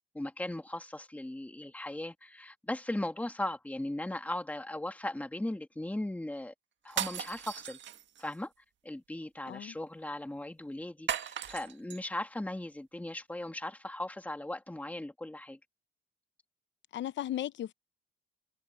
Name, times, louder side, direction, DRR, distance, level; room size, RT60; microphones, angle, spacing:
voice 1, 0.1-6.5 6.8-7.8 8.2-8.5 8.8-15.6, left 1 dB, 5° left, 2.0 m, -38 dB
sound 1, 6.9-8.4 11.1-12.0, right 9 dB, 65° right, 1.8 m, -37 dB
voice 2, 16.9-17.7, left 12 dB, 65° left, 0.8 m, -36 dB
cardioid pair, 90°, 20 cm